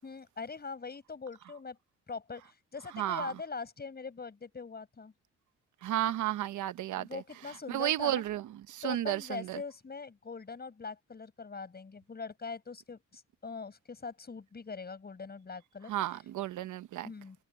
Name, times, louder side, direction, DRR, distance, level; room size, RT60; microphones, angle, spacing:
voice 1, 0.0-1.8 2.1-5.1 7.0-8.2 8.8-15.9 17.0-17.4, left 4 dB, 30° left, 7.4 m, -42 dB
voice 2, 2.9-3.3 5.8-7.2 7.7-9.6 15.9-17.1, right 13 dB, 75° right, 1.0 m, -33 dB
cardioid pair, 90°, 30 cm